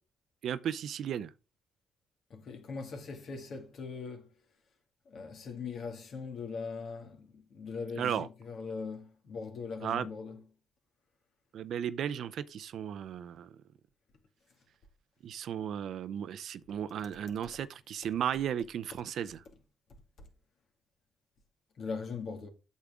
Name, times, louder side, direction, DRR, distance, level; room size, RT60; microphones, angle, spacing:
voice 1, 0.4-1.3 8.0-8.3 9.8-10.1 11.5-13.5 15.2-19.4, right 9 dB, 70° right, 0.6 m, -35 dB
voice 2, 2.3-4.3 5.1-10.4 21.8-22.5, left 5 dB, 60° left, 2.3 m, -40 dB
8.3 x 7.4 x 3.6 m
cardioid pair, 90°, 0 cm